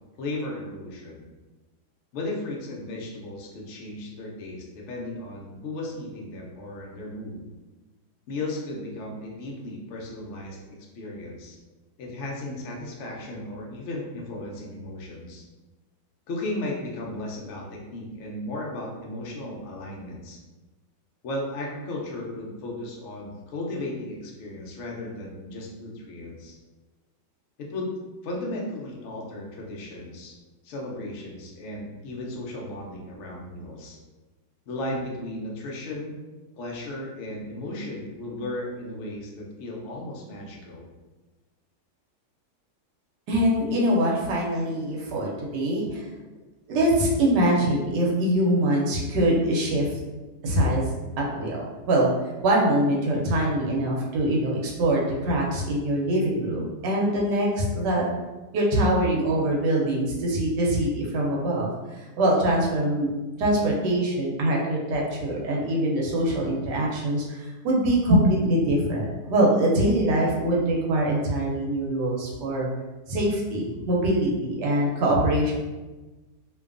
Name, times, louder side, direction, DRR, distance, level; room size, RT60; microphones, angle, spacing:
voice 1, 0.2-1.3 2.1-7.4 8.3-11.6 12.0-15.4 16.3-20.4 21.2-26.6 27.6-27.9 28.2-30.4 30.6-34.0 34.7-36.1 36.6-40.9, left 1 dB, 75° left, -2 dB, 0.6 m, -35 dB
voice 2, 43.3-46.0 46.7-49.9 50.4-52.1 52.4-58.0 58.5-63.1 63.4-72.7 73.1-75.5, right 1 dB, 80° right, -3 dB, 1.2 m, -23 dB
2.7 x 2.2 x 2.4 m, 1.2 s
omnidirectional pair, 1.8 m